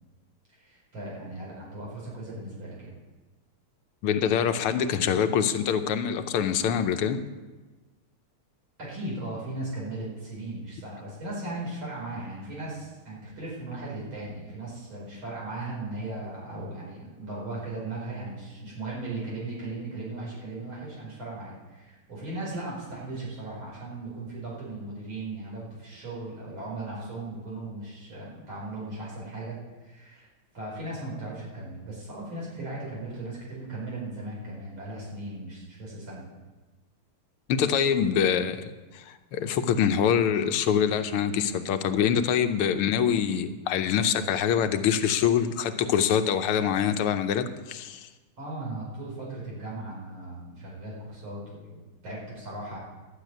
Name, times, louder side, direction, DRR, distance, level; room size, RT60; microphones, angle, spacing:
voice 1, 0.5-2.9 8.8-30.3 30.5-36.3 48.4-52.8, right 2 dB, 65° right, -6 dB, 5.6 m, -37 dB
voice 2, 4.0-7.2 37.5-48.1, left 8 dB, 85° left, 9 dB, 1.7 m, -25 dB
12.0 x 6.9 x 9.1 m, 1.2 s
omnidirectional pair, 2.4 m